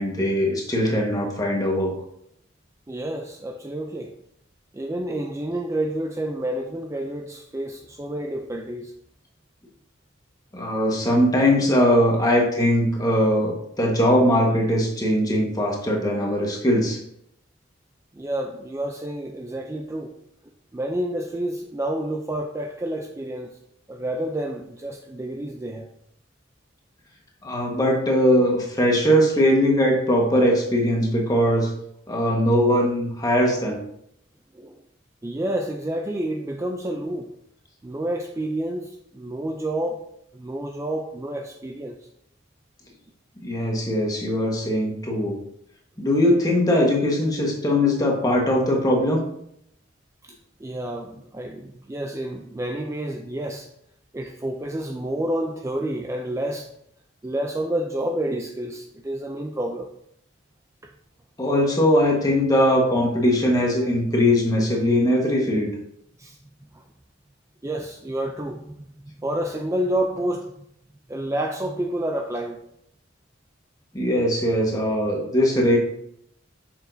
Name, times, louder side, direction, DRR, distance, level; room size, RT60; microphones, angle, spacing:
voice 1, 0.0-2.0 10.5-17.0 27.4-31.7 32.1-33.8 43.4-45.4 46.0-49.3 61.4-65.7 73.9-75.8, equal, 20° left, -1 dB, 1.3 m, -20 dB
voice 2, 2.9-4.1 4.7-8.9 18.1-20.2 20.7-23.6 23.9-25.9 34.5-34.8 35.2-37.3 37.8-40.0 40.3-42.0 50.2-53.7 54.1-56.7 57.2-59.9 66.2-66.4 66.7-66.8 67.6-68.7 69.0-70.5 71.1-72.6, right 1 dB, 15° right, 3 dB, 0.4 m, -29 dB
7.2 x 6.0 x 2.6 m, 0.73 s
head